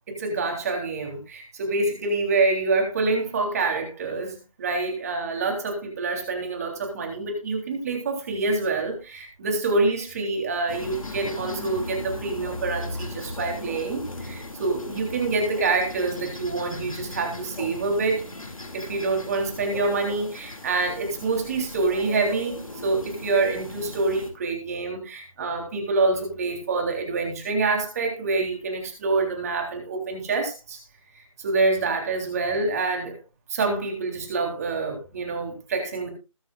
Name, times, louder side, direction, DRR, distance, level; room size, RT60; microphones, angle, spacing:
voice 1, 0.1-18.3 18.7-30.8 31.4-33.2 33.5-36.1, right 3 dB, 30° right, 2 dB, 3.4 m, -26 dB
sound 1, 10.7-24.3, left 2 dB, 80° left, 2.5 m, -38 dB
21.0 x 7.5 x 2.4 m, 0.29 s
figure-of-eight pair, 160°, 17 cm